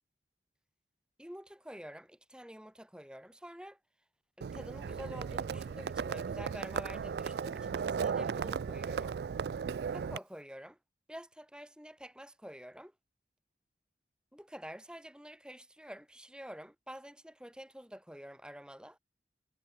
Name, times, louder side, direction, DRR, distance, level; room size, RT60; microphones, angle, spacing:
voice 1, 1.2-3.8 4.4-9.2 9.9-10.8 11.1-12.9 14.3-19.0, equal, 5° right, 6.0 m, -48 dB
Livestock farm animals working animals, 4.4-10.2, right 6 dB, 70° right, 0.3 m, -36 dB
head